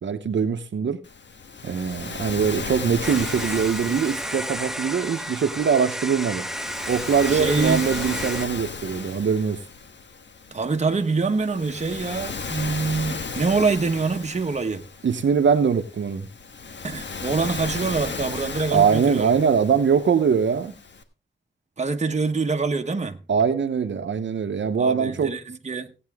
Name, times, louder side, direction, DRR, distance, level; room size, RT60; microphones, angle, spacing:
voice 1, 0.0-1.0 1.6-6.5 6.9-9.6 15.0-16.3 18.7-20.7 23.3-25.3, right 6 dB, 75° right, 0.9 m, -22 dB
Waves surf, 1.0-21.0, left 4 dB, 70° left, 1.3 m, -35 dB
sound 1, 3.0-8.5, equal, ahead, 0.7 m, -32 dB
voice 2, 7.3-7.9 10.5-14.8 16.8-19.3 21.8-23.2 24.8-25.9, right 4 dB, 35° right, 1.0 m, -25 dB
16.5 x 8.6 x 3.5 m
wide cardioid pair, 140°, 19 cm